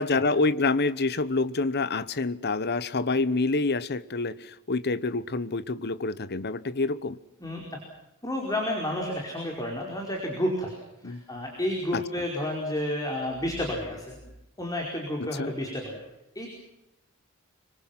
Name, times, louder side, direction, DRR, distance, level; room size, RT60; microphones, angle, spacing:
voice 1, 0.0-7.2 11.0-11.2 11.9-12.0 15.2-15.5, left 3 dB, 50° left, 1.0 m, -27 dB
voice 2, 7.4-7.8 8.2-10.7 11.0-14.2 14.6-16.0 16.3-16.5, left 1 dB, 15° left, 4.9 m, -31 dB
26.0 x 25.0 x 6.0 m
head